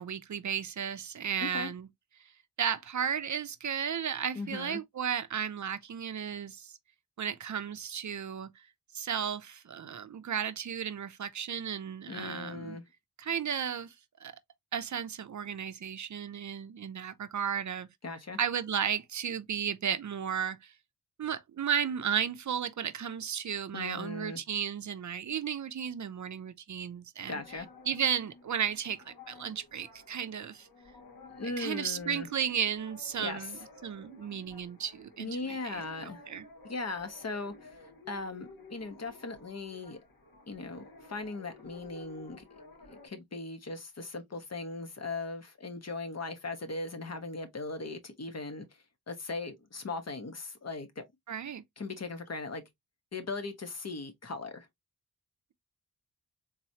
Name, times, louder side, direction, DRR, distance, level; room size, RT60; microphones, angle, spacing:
voice 1, 0.0-1.9 2.6-6.7 7.2-8.7 8.9-12.8 13.2-13.9 14.2-14.3 14.7-17.9 18.4-20.7 21.2-27.4 27.9-30.7 31.6-35.8 36.3-36.4 51.3-51.6, right 8 dB, 55° right, 0.5 m, -34 dB
voice 2, 1.4-1.7 4.3-4.8 12.1-12.8 18.0-18.4 23.7-24.4 27.3-27.7 31.4-32.3 33.2-33.5 35.2-36.2 36.6-40.0 40.5-42.4 42.9-48.7 49.1-51.0 51.8-52.6 53.1-54.7, left 3 dB, 45° left, 1.1 m, -38 dB
sound 1, 27.3-43.1, left 2 dB, 85° left, 2.1 m, -53 dB
3.9 x 3.0 x 2.7 m
wide cardioid pair, 90°, 36 cm